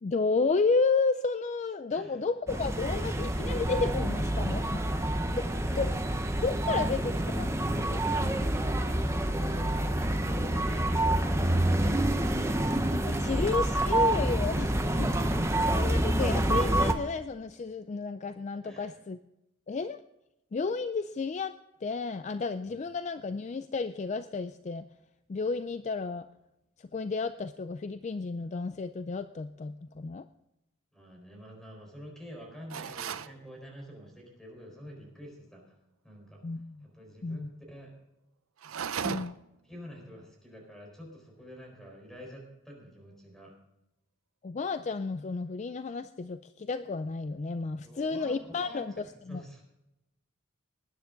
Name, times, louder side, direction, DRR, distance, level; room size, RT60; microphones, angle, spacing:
voice 1, 0.0-4.9 5.3-6.0 6.4-7.5 7.9-8.0 13.2-14.7 15.0-15.1 15.7-19.2 19.7-20.0 20.5-24.8 25.3-26.2 26.9-30.3 36.4-36.8 37.2-37.5 39.0-39.3 44.4-49.4, left 4 dB, 35° left, 12 dB, 0.3 m, -32 dB
voice 2, 1.9-2.3 4.9-6.5 6.8-7.2 8.1-12.5 12.9-14.3 14.5-14.7 15.2-15.8 18.6-18.9 30.9-35.8 36.0-36.4 36.8-37.9 39.7-43.5 47.8-48.8 49.3-49.6, equal, ahead, 0 dB, 4.3 m, -47 dB
sound 1, 2.5-16.9, right 1 dB, 15° right, 0.8 m, -27 dB
sound 2, 32.7-33.3 38.6-39.5, right 7 dB, 85° right, 0.6 m, -35 dB
19.5 x 9.7 x 3.9 m, 0.91 s
head